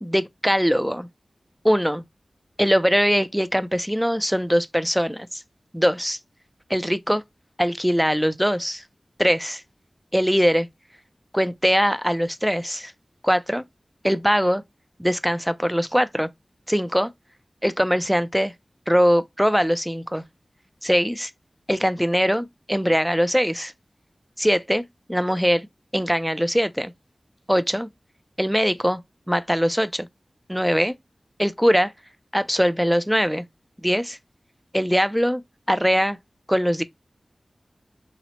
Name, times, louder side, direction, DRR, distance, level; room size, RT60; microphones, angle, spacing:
voice 1, 0.0-1.1 1.6-2.0 2.6-5.4 5.7-6.2 6.7-7.2 7.6-8.8 9.2-9.6 10.1-10.7 11.3-12.9 13.2-13.6 14.0-14.6 15.0-16.3 16.7-17.1 17.6-18.5 18.9-20.2 20.8-21.3 21.7-23.7 24.4-24.8 25.1-25.7 25.9-26.9 27.5-27.9 28.4-29.0 29.3-30.1 30.5-30.9 31.4-31.9 32.3-33.4 33.8-34.2 34.7-35.4 35.7-36.2 36.5-36.8, equal, ahead, 0.3 m, -21 dB
4.2 x 2.0 x 2.8 m
wide cardioid pair, 50°, 0 cm